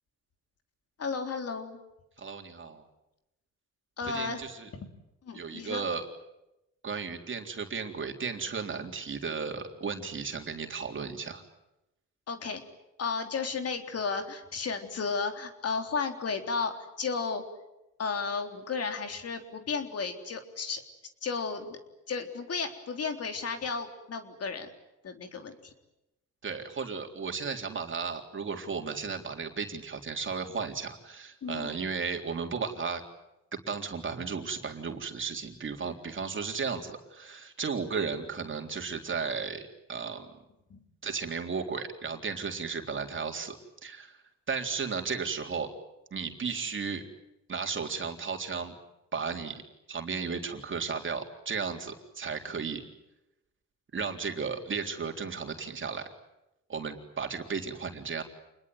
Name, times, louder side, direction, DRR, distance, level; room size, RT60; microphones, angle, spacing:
voice 1, 1.0-1.8 4.0-4.5 4.7-4.9 5.2-5.8 12.3-12.6 13.0-17.4 18.0-20.8 21.2-21.8 22.1-24.7 25.0-25.5 31.4-31.7 40.7-40.8, left 5 dB, 55° left, 6 dB, 3.7 m, -33 dB
voice 2, 2.2-2.8 4.1-4.7 5.3-6.1 6.8-11.4 26.4-33.0 33.7-40.3 41.0-43.6 43.8-44.2 44.5-45.7 46.1-47.0 47.5-48.7 49.1-49.6 49.9-52.8 53.9-56.1 56.7-58.2, right 5 dB, 40° right, 4 dB, 3.7 m, -34 dB
28.0 x 21.0 x 9.4 m, 0.91 s
cardioid pair, 90°, 30 cm